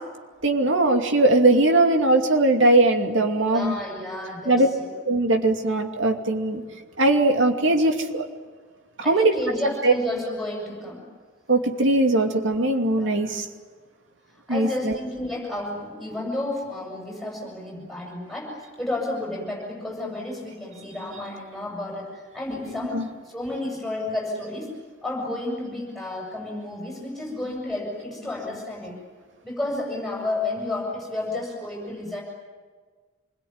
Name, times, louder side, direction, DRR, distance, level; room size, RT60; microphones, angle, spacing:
voice 1, 0.4-3.8 4.5-4.7 5.1-6.6 7.0-8.2 9.0-9.3 9.8-9.9 11.5-13.4 14.5-15.0 22.7-23.1, right 2 dB, 70° right, 3 dB, 2.6 m, -20 dB
voice 2, 3.5-4.9 9.0-11.0 13.0-13.3 14.5-24.7 25.0-28.9 29.4-32.2, left 2 dB, ahead, -1 dB, 7.5 m, -31 dB
26.5 x 21.5 x 9.7 m, 1.5 s
head